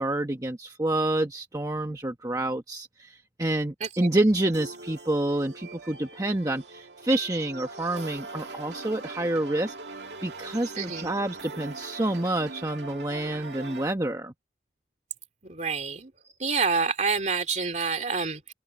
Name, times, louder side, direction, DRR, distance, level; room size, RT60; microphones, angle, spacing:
voice 1, 0.0-9.7 10.2-14.3, right 1 dB, 20° right, 1.1 m, -28 dB
sound 1, 4.4-13.9, right 3 dB, 70° right, 2.3 m, -41 dB
voice 2, 10.8-11.1 15.4-16.1 16.4-18.5, right 4 dB, 40° right, 2.8 m, -28 dB
open air
head